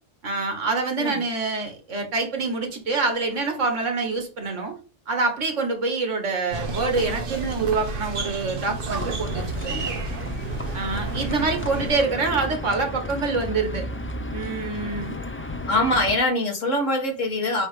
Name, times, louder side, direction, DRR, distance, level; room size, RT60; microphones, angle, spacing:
voice 1, 0.2-4.7 5.1-9.9 10.7-13.8 14.3-15.2, right 3 dB, 80° right, 4 dB, 1.9 m, -26 dB
sound 1, 6.5-12.0, right 3 dB, 50° right, 1.0 m, -31 dB
Livestock farm animals working animals, 8.9-16.2, left 1 dB, 20° left, 0.4 m, -33 dB
voice 2, 15.7-17.7, left 1 dB, 85° left, 3 dB, 2.0 m, -23 dB
7.7 x 2.9 x 5.1 m, 0.35 s
omnidirectional pair, 1.3 m